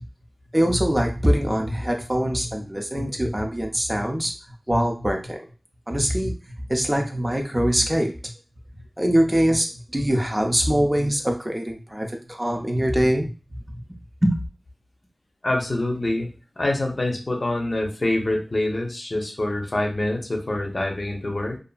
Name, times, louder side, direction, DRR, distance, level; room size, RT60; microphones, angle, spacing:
voice 1, 0.5-4.3 4.7-5.4 5.9-6.3 6.7-8.1 9.0-13.3 14.2-14.4, equal, 20° right, 2 dB, 0.5 m, -23 dB
voice 2, 15.4-21.6, left 1 dB, 50° left, 1 dB, 0.6 m, -25 dB
2.7 x 2.5 x 2.3 m, 0.34 s
wide cardioid pair, 55°, 0 cm